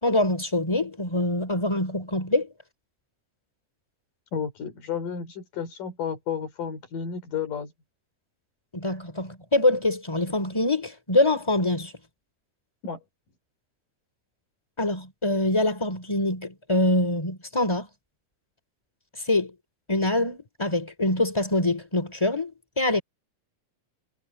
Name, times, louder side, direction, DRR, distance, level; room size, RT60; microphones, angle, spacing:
voice 1, 0.0-2.5 8.7-11.9 14.8-17.9 19.3-19.5 19.9-23.0, left 1 dB, 10° left, 3.9 m, -24 dB
voice 2, 4.3-7.7 12.8-13.0, left 7 dB, 85° left, 5.3 m, -32 dB
omnidirectional pair, 3.7 m